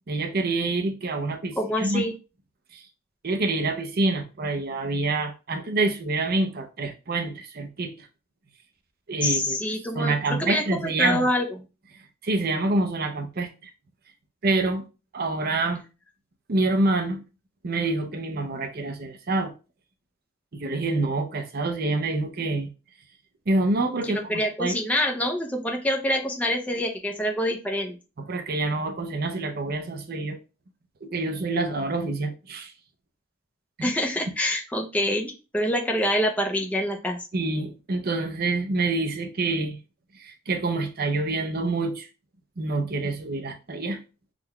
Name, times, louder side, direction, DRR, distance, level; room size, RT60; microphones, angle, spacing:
voice 1, 0.1-2.0 2.7-2.8 3.2-8.1 9.1-9.6 9.9-11.3 12.2-13.5 14.4-14.8 15.1-15.8 16.5-17.2 17.6-19.5 20.5-22.7 23.5-24.2 24.6-24.8 28.2-30.4 31.0-32.7 33.8-33.9 37.3-39.8 40.2-42.1 42.6-44.0, right 2 dB, 45° right, 0.5 m, -26 dB
voice 2, 1.6-2.1 9.2-11.5 24.0-28.0 33.8-37.2, left 1 dB, 5° left, 0.5 m, -26 dB
3.8 x 2.2 x 2.9 m
head